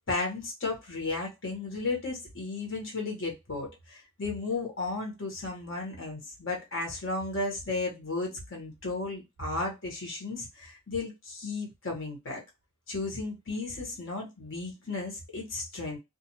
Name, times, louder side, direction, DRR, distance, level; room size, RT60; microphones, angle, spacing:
voice 1, 0.1-12.4 12.9-16.0, left 3 dB, 60° left, 1.1 m, -34 dB
2.4 x 2.4 x 2.8 m
head